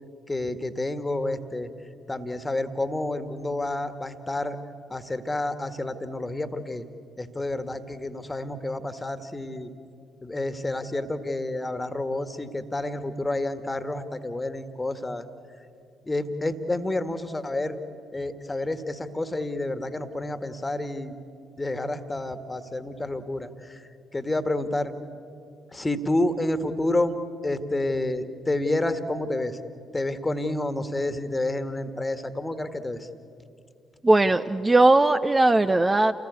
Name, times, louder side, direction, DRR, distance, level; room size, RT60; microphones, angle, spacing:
voice 1, 0.3-1.7 2.1-4.6 4.9-6.9 7.2-9.7 10.2-15.3 16.1-17.8 18.1-21.2 21.6-23.8 24.1-24.9 25.7-27.2 27.4-29.6 29.9-33.1, left 2 dB, 20° left, 10 dB, 1.8 m, -29 dB
voice 2, 34.0-36.1, right 2 dB, 20° right, 9 dB, 0.7 m, -19 dB
30.0 x 19.5 x 8.3 m, 2.5 s
figure-of-eight pair, 45°, 0 cm